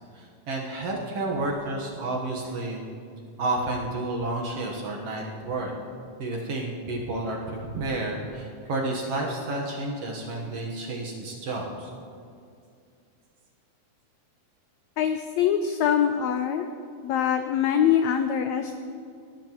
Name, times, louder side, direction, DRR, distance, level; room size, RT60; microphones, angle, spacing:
voice 1, 0.1-2.8 3.4-5.7 6.2-11.9, right 2 dB, 60° right, -1 dB, 1.9 m, -31 dB
voice 2, 15.0-16.7 17.0-18.8, left 9 dB, 90° left, 8 dB, 1.5 m, -24 dB
18.5 x 12.0 x 3.0 m, 2.4 s
omnidirectional pair, 3.7 m